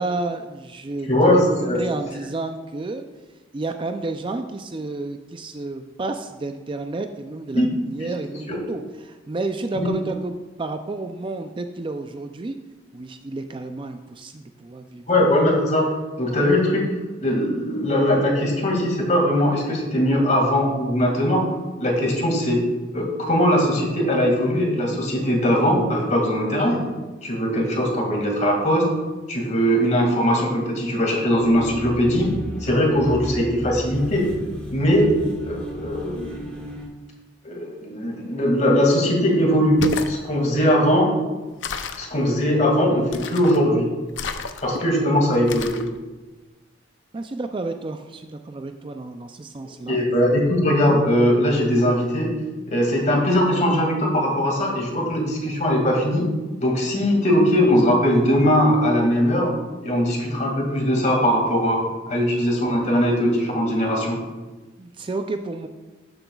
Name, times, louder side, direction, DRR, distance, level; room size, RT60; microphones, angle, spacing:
voice 1, 0.0-3.0 3.5-10.3 10.6-12.6 12.9-15.1 16.3-16.4 47.1-50.0 64.8-65.7, right 2 dB, 25° right, 7 dB, 0.4 m, -31 dB
voice 2, 1.1-1.8 7.5-7.7 8.0-8.1 8.5-8.6 9.8-9.9 15.1-15.9 16.2-16.9 17.2-21.5 21.8-22.6 22.9-26.8 27.2-28.9 29.3-32.3 32.6-34.3 34.7-35.1 35.5-36.3 37.4-41.1 42.0-43.9 44.6-45.8 49.9-52.3 52.7-56.2 56.6-59.5 59.8-64.2, equal, 40° left, 0 dB, 2.1 m, -20 dB
sound 1, 31.3-36.9, equal, 5° left, 1.8 m, -35 dB
sound 2, 39.6-40.2 41.6-42.1 43.1-43.6 44.1-44.8 45.5-45.9, left 5 dB, 75° left, 0.6 m, -30 dB
12.5 x 7.8 x 2.3 m, 1.2 s
head